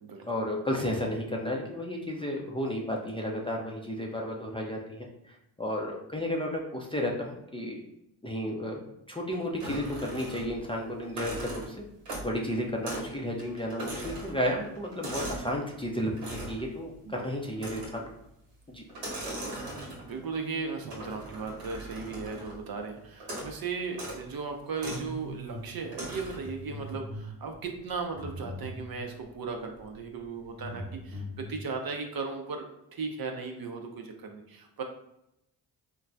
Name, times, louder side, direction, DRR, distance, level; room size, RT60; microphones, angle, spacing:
voice 1, 0.2-5.1 5.6-7.8 8.2-8.8 9.1-11.8 12.2-18.1 18.7-18.8, left 1 dB, 10° left, -1 dB, 0.5 m, -32 dB
sound 1, 9.6-10.7 11.0-12.4 12.8-13.1 13.4-15.5 16.2-16.7 17.6-18.1 18.9-20.2 20.9-22.6 23.2-23.6 23.9-24.2 24.8-25.1 25.9-26.5, right 1 dB, 85° right, 1.1 m, -39 dB
voice 2, 9.7-10.2 17.0-17.3 19.7-34.8, right 4 dB, 45° right, 4 dB, 0.6 m, -37 dB
sound 2, 24.8-25.7 26.1-29.1 29.8-29.9 30.2-31.5, equal, 5° right, 1.1 m, -41 dB
3.0 x 2.2 x 2.5 m, 0.83 s
supercardioid pair, 45°, 50 cm